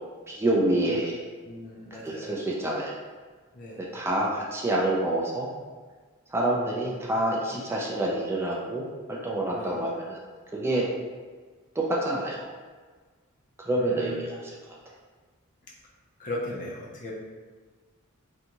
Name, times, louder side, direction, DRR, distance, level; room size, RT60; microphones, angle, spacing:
voice 1, 0.3-1.2 2.0-3.0 3.8-5.5 6.3-10.2 10.5-10.9 11.8-12.5 13.6-14.4, right 1 dB, 10° right, -4 dB, 0.3 m, -27 dB
voice 2, 1.4-2.3 3.5-3.8 9.5-9.8 13.7-14.2 16.2-17.1, left 1 dB, 40° left, -4 dB, 0.6 m, -37 dB
2.6 x 2.3 x 2.8 m, 1.4 s
head